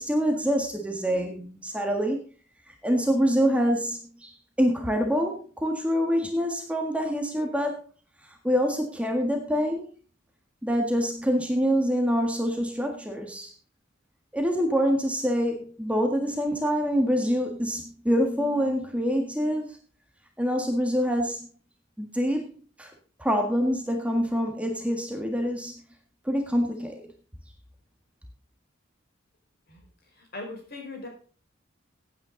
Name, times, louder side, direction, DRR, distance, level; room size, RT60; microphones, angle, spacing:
voice 1, 0.0-2.2 2.7-7.8 8.4-9.9 10.6-13.5 14.3-19.8 20.4-21.5 22.0-22.5 22.8-22.9 23.2-25.8 26.2-27.0, equal, 5° right, 3 dB, 1.7 m, -26 dB
voice 2, 30.3-31.1, left 2 dB, 50° left, 2 dB, 5.0 m, -38 dB
15.5 x 9.1 x 3.9 m, 0.38 s
head